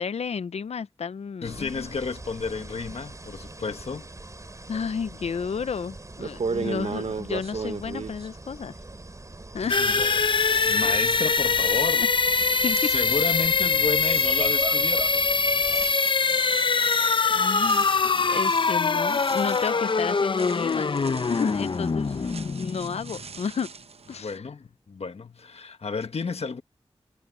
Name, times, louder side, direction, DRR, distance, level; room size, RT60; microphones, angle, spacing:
voice 1, 0.0-1.9 4.7-8.7 9.5-10.0 12.0-12.1 12.6-12.9 17.3-20.9 21.3-23.7 24.1-24.4, left 6 dB, 90° left, 0.5 m, -32 dB
voice 2, 1.4-4.1 6.6-7.1 9.6-12.0 12.6-15.2 22.2-22.3 24.2-26.6, left 4 dB, 75° left, 1.4 m, -32 dB
sound 1, 1.4-15.9, right 2 dB, 30° right, 3.0 m, -42 dB
sound 2, 5.6-5.7 6.2-9.3 9.6-24.4, right 5 dB, 70° right, 0.7 m, -39 dB
sound 3, 9.7-23.4, left 4 dB, 50° left, 0.6 m, -23 dB
wide cardioid pair, 80°, 11 cm